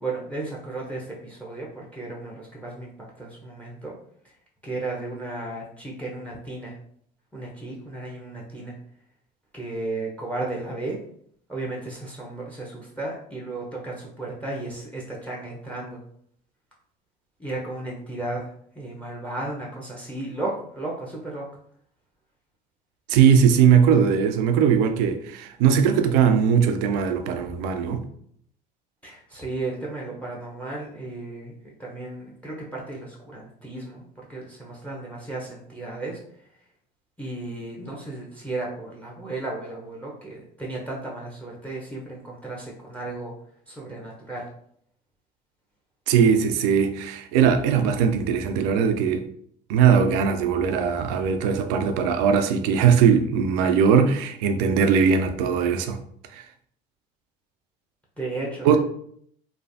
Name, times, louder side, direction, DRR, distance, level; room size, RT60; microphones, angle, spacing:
voice 1, 0.0-2.9 3.2-4.0 4.6-6.8 7.3-8.7 9.5-11.0 11.5-16.0 17.4-21.5 29.0-36.2 37.2-43.3 43.7-44.5 58.2-58.8, right 2 dB, 5° left, 0.8 m, -34 dB
voice 2, 23.1-28.0 46.1-49.3 49.7-56.0 56.3-56.4 58.6-58.8, right 7 dB, 75° right, 0.4 m, -20 dB
3.2 x 2.1 x 2.6 m
hypercardioid pair, 60°, 21 cm